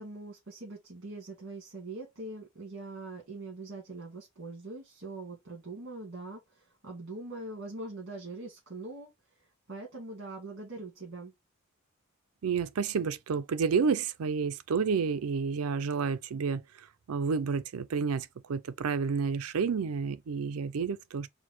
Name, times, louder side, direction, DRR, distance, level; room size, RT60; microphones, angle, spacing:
voice 1, 0.0-9.1 9.4-11.3, right 2 dB, 60° right, 1.9 m, -42 dB
voice 2, 12.4-16.6 17.1-21.3, right 5 dB, 85° right, 0.5 m, -30 dB
4.6 x 2.2 x 4.1 m
head